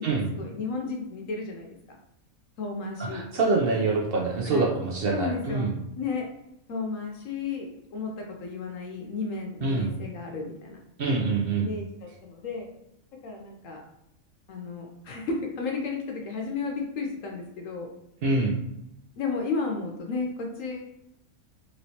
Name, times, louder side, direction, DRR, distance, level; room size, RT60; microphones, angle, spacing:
voice 1, 0.0-1.8 2.6-3.2 4.4-4.6 5.1-6.3 6.7-8.1 8.4-10.8 11.6-12.7 13.2-13.8 14.5-17.9 19.2-20.8, left 4 dB, 70° left, 1 dB, 0.9 m, -33 dB
voice 2, 3.0-5.7 9.6-9.9 11.0-11.7 18.2-18.5, right 3 dB, 60° right, -1 dB, 0.6 m, -25 dB
3.1 x 3.1 x 2.7 m, 0.82 s
omnidirectional pair, 1.5 m